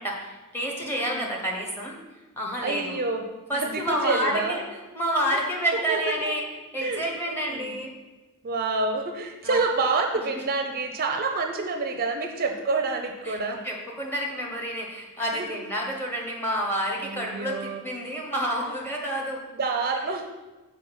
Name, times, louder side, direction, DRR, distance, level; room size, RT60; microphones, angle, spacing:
voice 1, 0.0-2.0 2.4-3.0 3.5-4.6 4.9-6.4 6.7-7.9 9.4-9.6 10.3-10.5 13.2-13.4 13.6-19.4, equal, 10° left, -2 dB, 1.0 m, -29 dB
voice 2, 0.8-1.2 2.6-3.2 3.5-4.6 5.3-5.4 5.9-6.3 6.8-7.8 8.4-13.6 15.3-15.6 17.0-17.8 19.5-20.2, right 3 dB, 40° right, 4 dB, 0.5 m, -28 dB
5.7 x 4.3 x 5.4 m, 1.2 s
head